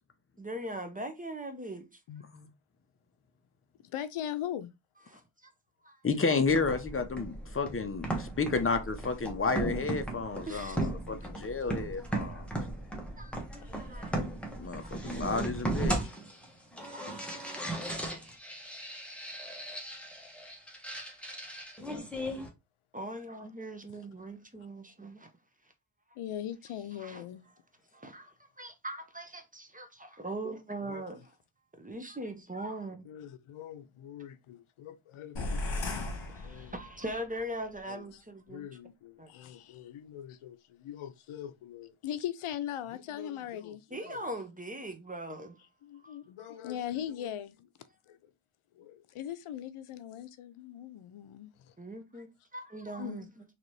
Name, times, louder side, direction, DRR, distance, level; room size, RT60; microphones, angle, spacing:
voice 1, 0.4-2.0 5.1-5.5 5.8-6.4 10.5-11.1 12.1-12.2 13.2-14.3 15.9-16.0 16.9-17.2 22.9-25.3 27.0-27.2 27.9-31.3 31.8-33.0 36.2-38.7 39.2-39.3 43.9-45.6 46.0-46.5 51.8-53.4, right 1 dB, 15° right, 0.8 m, -41 dB
voice 2, 3.9-4.7 11.1-12.1 13.6-13.9 26.2-27.5 30.8-31.0 33.1-36.1 36.4-36.8 37.9-38.1 38.5-44.3 45.8-47.7 48.1-48.3 48.7-51.7 53.0-53.3, left 10 dB, 85° left, 0.6 m, -41 dB
voice 3, 6.0-12.5 14.6-16.0, left 4 dB, 25° left, 0.7 m, -31 dB
sound 1, 6.5-22.5, right 1 dB, ahead, 1.2 m, -37 dB
sound 2, 35.4-37.2, left 2 dB, 65° left, 1.2 m, -36 dB
4.0 x 3.0 x 3.2 m
wide cardioid pair, 90°, 49 cm